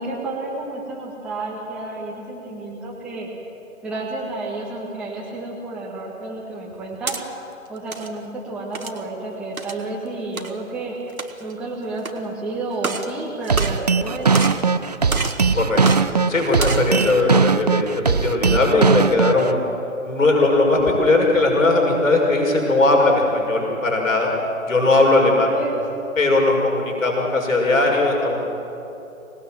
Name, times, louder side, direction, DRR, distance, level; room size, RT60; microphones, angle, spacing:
voice 1, 0.0-3.3 3.8-7.2 7.7-10.9 11.4-14.3 25.2-25.8, right 2 dB, 5° right, -7 dB, 1.9 m, -31 dB
sound 1, 6.7-7.2 7.8-8.1 8.7-9.0 9.6-9.8 10.4-10.5 11.1-11.5 12.0-12.1 12.7-13.1 13.4-14.1 14.3-14.7 15.1-15.4 15.8-16.0 16.5-16.9, right 3 dB, 80° right, 1.9 m, -28 dB
sound 2, 13.5-19.5, right 5 dB, 30° right, 0.5 m, -19 dB
voice 2, 16.3-19.6 20.0-24.3 24.6-25.5 26.2-28.5, left 2 dB, 70° left, 0 dB, 6.1 m, -19 dB
25.0 x 19.5 x 7.6 m, 3.0 s
figure-of-eight pair, 140°, 42 cm